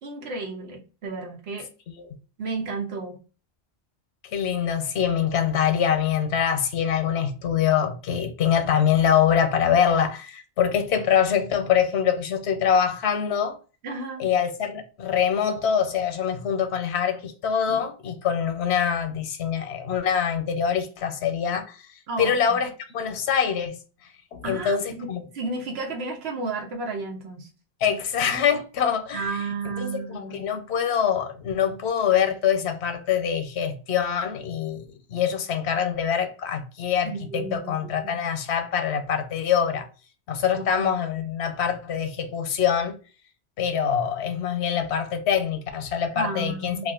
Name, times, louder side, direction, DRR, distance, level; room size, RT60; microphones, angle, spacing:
voice 1, 0.0-1.7 2.4-3.2 13.8-14.2 22.1-22.6 24.4-25.1 25.3-27.5 29.1-30.4 37.0-37.7 38.0-38.1 40.6-40.9 46.2-46.9, right 3 dB, 75° right, 1.1 m, -32 dB
voice 2, 4.3-13.6 14.2-21.8 22.2-23.8 24.3-25.2 27.8-39.9 40.3-43.0 43.6-46.9, left 8 dB, 85° left, 0.9 m, -24 dB
2.5 x 2.4 x 3.5 m
omnidirectional pair, 1.1 m